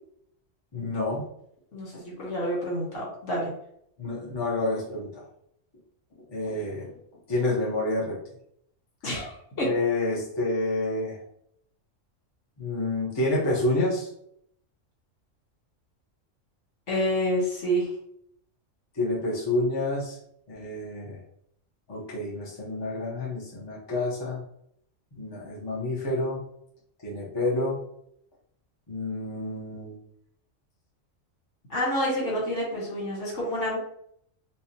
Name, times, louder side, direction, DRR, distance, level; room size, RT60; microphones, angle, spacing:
voice 1, 0.7-1.3 4.0-5.2 6.3-6.9 7.3-8.2 9.6-11.2 12.6-14.1 18.9-20.2 20.5-21.2 21.9-24.4 25.1-26.4 27.0-27.8 28.9-30.0, left 2 dB, 25° left, -5 dB, 0.9 m, -28 dB
voice 2, 1.7-3.5 9.0-9.7 16.9-17.9 31.7-33.8, equal, 70° left, -4 dB, 1.7 m, -28 dB
4.4 x 2.3 x 2.8 m, 0.69 s
omnidirectional pair, 1.3 m